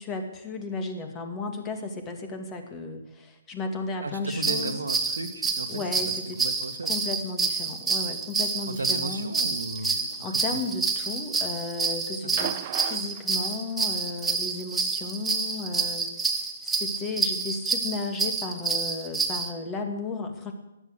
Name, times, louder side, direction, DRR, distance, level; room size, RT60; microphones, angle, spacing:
voice 1, 0.0-4.8 5.7-6.4 6.8-9.3 10.2-20.5, left 3 dB, 20° left, 6 dB, 2.3 m, -34 dB
voice 2, 4.0-5.8 6.4-7.0 8.7-10.2 10.5-10.6 12.2-12.4, right 2 dB, 75° right, 7 dB, 1.7 m, -35 dB
sound 1, 4.3-19.5, right 4 dB, 5° right, 1.3 m, -28 dB
sound 2, 12.4-14.0 15.3-15.4, right 13 dB, 35° right, 0.5 m, -37 dB
14.5 x 11.0 x 8.0 m, 0.95 s
figure-of-eight pair, 135°, 0 cm